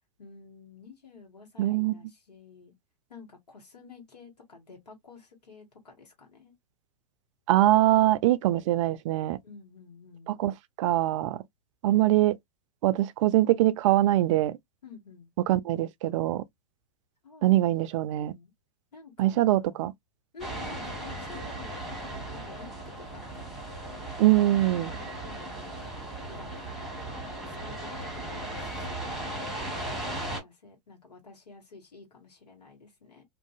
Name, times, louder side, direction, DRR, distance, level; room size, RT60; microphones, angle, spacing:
voice 1, 0.2-2.7 3.1-6.5 9.4-10.4 14.8-15.3 17.2-17.7 18.0-18.5 18.9-19.9 20.3-22.7 23.0-23.6 24.4-29.7 30.2-33.2, left 4 dB, 80° left, 1.3 m, -51 dB
voice 2, 1.6-2.0 7.5-9.4 10.3-11.4 11.8-12.4 12.8-14.6 15.5-16.4 17.4-18.3 19.2-19.9 24.2-24.9, right 15 dB, 50° right, 0.4 m, -23 dB
sound 1, 20.4-30.4, right 1 dB, ahead, 1.2 m, -37 dB
2.6 x 2.5 x 2.3 m
hypercardioid pair, 105°, 20 cm